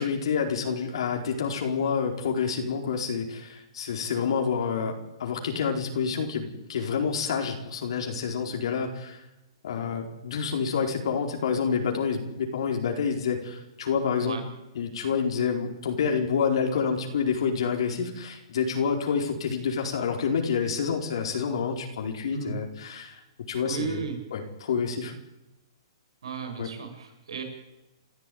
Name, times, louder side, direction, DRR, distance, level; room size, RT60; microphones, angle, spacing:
voice 1, 0.0-9.2 9.6-14.4 14.7-23.2 23.5-24.0 24.3-25.1 26.6-26.7, left 6 dB, 70° left, 2 dB, 4.5 m, -28 dB
voice 2, 23.6-24.2 26.2-27.4, right 7 dB, 80° right, 5 dB, 6.6 m, -35 dB
29.0 x 14.5 x 9.5 m, 1.0 s
hypercardioid pair, 150°, 3 cm